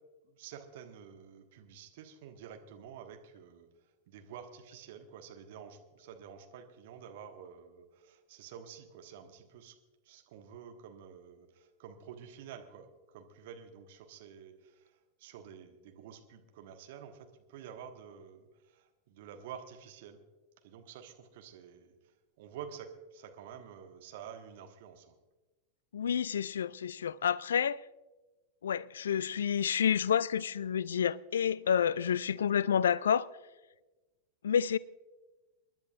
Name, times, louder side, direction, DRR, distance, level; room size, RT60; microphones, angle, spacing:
voice 1, 0.2-3.7 4.1-9.8 10.0-20.2 20.6-21.9 22.4-25.2, right 8 dB, 50° right, 1.4 m, -49 dB
voice 2, 25.9-27.8 28.6-33.3 34.4-34.8, left 8 dB, 65° left, 0.3 m, -29 dB
29.5 x 10.5 x 2.5 m
figure-of-eight pair, 90°, 0 cm